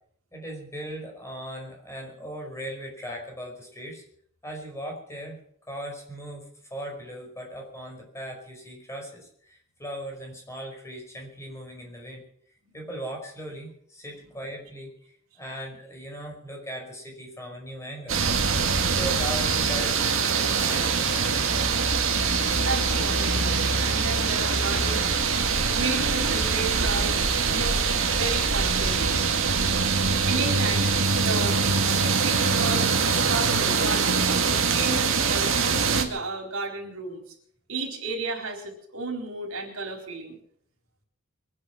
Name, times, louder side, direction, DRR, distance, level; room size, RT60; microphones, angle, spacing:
voice 1, 0.3-4.0 4.4-5.4 5.7-12.2 12.7-18.2 18.8-21.7, right 1 dB, 15° left, 0 dB, 5.2 m, -38 dB
sound 1, 18.1-36.0, right 5 dB, 70° right, 2.1 m, -23 dB
voice 2, 22.6-25.1 25.7-27.2 27.5-27.8 28.1-29.2 30.2-30.9 31.2-31.6 31.8-32.9 33.3-34.2 34.5-37.2 37.7-40.4, right 3 dB, 85° right, 2 dB, 4.3 m, -33 dB
23.0 x 10.5 x 5.9 m, 0.63 s
head